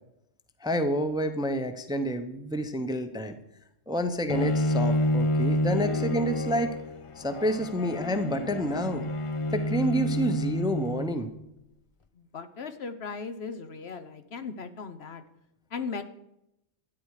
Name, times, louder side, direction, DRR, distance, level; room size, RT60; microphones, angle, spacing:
voice 1, 0.6-3.4 3.9-6.8 7.2-9.1 9.5-11.3, equal, 5° right, 8 dB, 0.7 m, -29 dB
Bowed string instrument, 4.3-11.4, left 1 dB, 35° left, 0.5 m, -29 dB
voice 2, 12.2-15.2 15.7-16.0, left 5 dB, 60° left, 8 dB, 1.0 m, -37 dB
13.0 x 9.6 x 4.8 m, 0.86 s
omnidirectional pair, 1.3 m